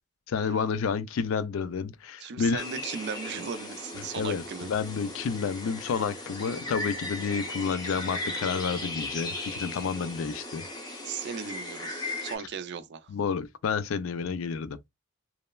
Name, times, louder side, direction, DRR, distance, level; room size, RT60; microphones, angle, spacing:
voice 1, 0.3-2.6 4.2-10.6 13.1-14.8, left 6 dB, 70° left, 0.4 m, -30 dB
voice 2, 2.2-4.7 11.0-13.1, right 6 dB, 55° right, 0.4 m, -37 dB
sound 1, 2.6-12.4, left 2 dB, 20° left, 0.7 m, -37 dB
3.0 x 2.0 x 2.2 m
head